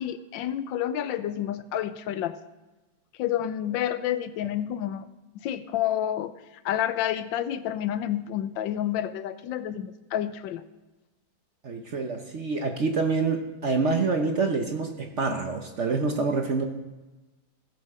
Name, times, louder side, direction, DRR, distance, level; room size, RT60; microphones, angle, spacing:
voice 1, 0.0-2.4 3.2-5.1 5.3-6.3 6.6-10.7, left 11 dB, 85° left, 12 dB, 1.3 m, -29 dB
voice 2, 11.6-16.6, right 4 dB, 50° right, 4 dB, 0.9 m, -26 dB
16.5 x 7.0 x 4.8 m, 1.1 s
omnidirectional pair, 2.0 m